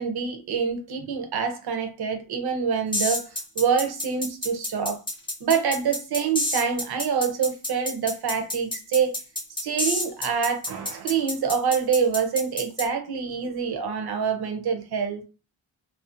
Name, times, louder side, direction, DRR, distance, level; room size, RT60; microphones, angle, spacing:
voice 1, 0.0-3.2 3.6-5.0 5.4-9.2 9.6-15.2, right 6 dB, 50° right, 0.6 m, -26 dB
sound 1, 2.9-12.9, left 1 dB, 10° left, 0.5 m, -29 dB
2.5 x 2.1 x 2.4 m
wide cardioid pair, 150°, 48 cm